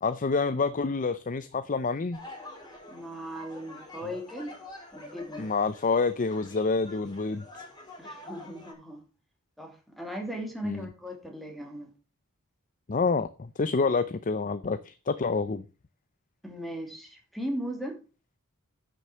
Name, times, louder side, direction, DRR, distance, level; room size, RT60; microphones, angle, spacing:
voice 1, 0.0-2.2 5.4-7.5 10.6-10.9 12.9-15.6, left 4 dB, 40° left, 0.6 m, -27 dB
sound 1, 2.1-8.7, left 2 dB, 20° left, 4.8 m, -47 dB
voice 2, 2.9-4.5 4.9-5.5 8.0-9.0 9.6-11.9 16.4-18.0, equal, ahead, 2.8 m, -37 dB
10.0 x 6.5 x 6.1 m
head